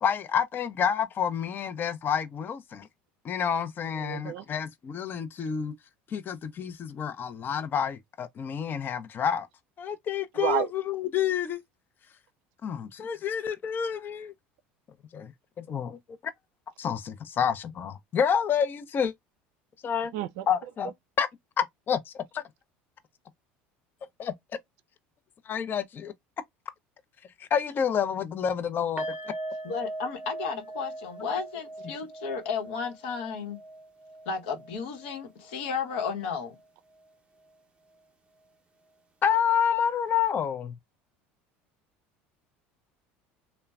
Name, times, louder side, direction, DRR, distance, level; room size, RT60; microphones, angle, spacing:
voice 1, 0.0-2.9 3.2-5.7 6.1-9.5 9.8-11.6 12.6-14.3 15.1-15.3 15.6-16.3 16.8-19.1 19.8-20.1 20.5-20.9 21.2-21.3 21.6-22.4 24.2-24.3 25.5-26.1 27.4-29.1 39.2-40.7, left 8 dB, 35° left, 0.5 m, -28 dB
voice 2, 4.0-4.5 10.3-10.7 20.1-20.5, right 12 dB, 70° right, 0.4 m, -30 dB
sound 1, 29.0-36.2 36.4-36.6 37.0-37.1, right 1 dB, 20° right, 0.7 m, -41 dB
voice 3, 29.6-33.6 34.3-36.6, left 5 dB, 80° left, 0.9 m, -33 dB
3.0 x 2.1 x 2.3 m
supercardioid pair, 95°, 6 cm